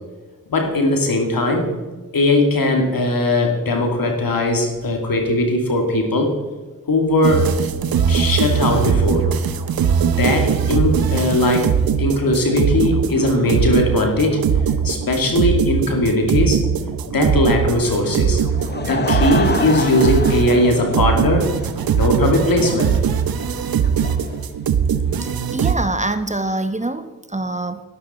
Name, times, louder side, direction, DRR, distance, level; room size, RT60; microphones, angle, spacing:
voice 1, 0.5-1.7 2.1-6.3 6.9-7.5 8.1-9.2 10.0-11.7 12.0-14.4 14.8-16.6 17.1-18.4 18.8-21.5 21.9-22.9, left 1 dB, 75° left, 3 dB, 2.5 m, -19 dB
sound 1, 7.2-25.7, right 7 dB, 85° right, 0.8 m, -20 dB
Laughter / Crowd, 18.4-25.3, left 4 dB, 30° left, 0.8 m, -29 dB
voice 2, 25.2-27.8, right 2 dB, 20° right, 10 dB, 1.0 m, -25 dB
12.0 x 11.5 x 4.3 m, 1.2 s
cardioid pair, 45°, 35 cm